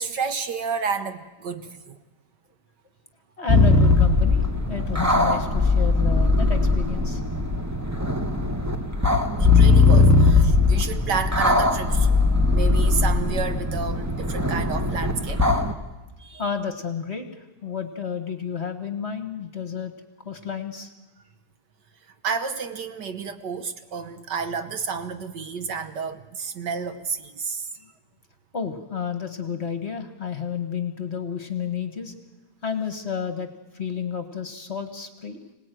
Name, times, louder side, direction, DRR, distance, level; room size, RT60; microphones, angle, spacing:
voice 1, 0.0-2.0 9.4-12.2 12.5-15.7 16.2-16.4 22.2-27.7, right 5 dB, 60° right, 9 dB, 1.6 m, -30 dB
voice 2, 3.4-7.2 8.0-8.1 16.4-17.2 17.6-19.9 20.2-20.9 28.5-32.1 32.6-33.5 33.7-35.4, left 7 dB, 35° left, 7 dB, 1.5 m, -31 dB
sound 1, 3.5-15.7, left 3 dB, 10° right, 0.9 m, -20 dB
25.5 x 18.5 x 9.2 m, 1.1 s
omnidirectional pair, 2.2 m